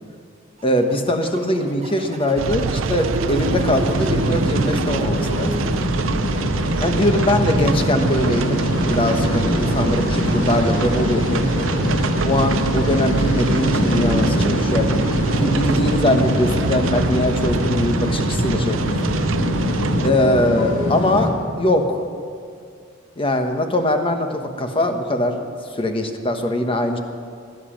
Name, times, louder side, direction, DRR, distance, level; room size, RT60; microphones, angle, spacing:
voice 1, 0.6-5.5 6.8-11.4 12.2-15.0 15.3-19.1 20.0-21.3 21.6-22.0 23.2-25.4 25.7-27.0, left 1 dB, 30° left, 5 dB, 1.2 m, -21 dB
sound 1, 0.6-5.9, right 2 dB, 35° right, 1.0 m, -31 dB
sound 2, 2.4-20.1, right 4 dB, 80° right, 0.5 m, -25 dB
sound 3, 3.4-21.3, left 1 dB, 85° left, 2.4 m, -23 dB
16.5 x 11.0 x 7.3 m, 2.3 s
head